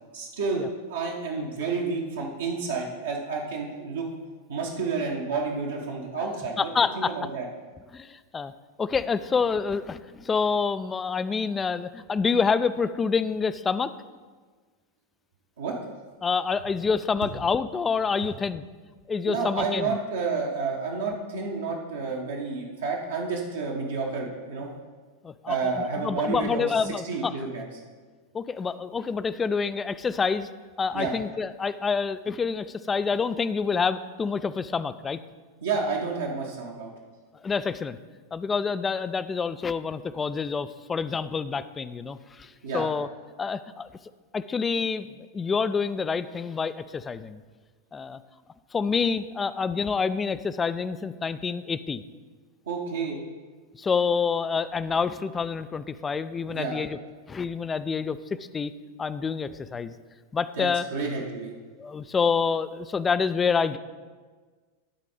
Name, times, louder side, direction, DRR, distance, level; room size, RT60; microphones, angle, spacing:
voice 1, 0.1-4.1 4.5-7.5 15.6-15.8 19.3-24.7 25.5-27.7 30.9-31.1 35.6-36.9 42.6-42.8 52.7-53.2 56.5-56.8 60.6-61.5, right 4 dB, 65° right, -2 dB, 1.0 m, -30 dB
voice 2, 6.6-7.1 7.9-8.5 8.8-13.9 16.2-18.6 19.1-19.9 25.2-27.3 28.3-30.5 30.8-35.2 37.4-38.0 38.3-43.1 43.4-43.9 44.3-47.4 47.9-48.2 48.7-52.0 53.8-57.0 57.3-58.7 59.0-59.9 60.3-60.9 61.8-63.8, left 5 dB, 15° left, 14 dB, 0.3 m, -27 dB
11.5 x 4.2 x 4.9 m, 1.4 s
figure-of-eight pair, 90°, 0 cm